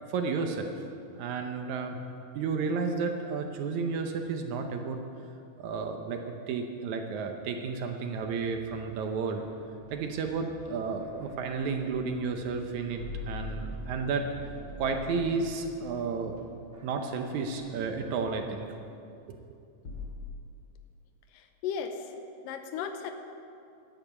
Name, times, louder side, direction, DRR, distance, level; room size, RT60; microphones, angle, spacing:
voice 1, 0.1-0.7 1.2-2.0 2.4-5.0 5.6-9.5 9.9-14.3 14.8-16.4 16.8-18.7 19.3-19.4, right 4 dB, 70° right, 4 dB, 2.0 m, -32 dB
sound 1, 8.1-18.6, right 2 dB, 20° right, 1.2 m, -53 dB
sound 2, 8.6-9.1 13.0-16.4 19.8-20.0, left 2 dB, 35° left, 2.8 m, -41 dB
voice 2, 21.3-22.1 22.4-23.1, left 7 dB, 90° left, 7 dB, 2.5 m, -35 dB
12.0 x 8.6 x 8.1 m, 2.6 s
omnidirectional pair, 3.8 m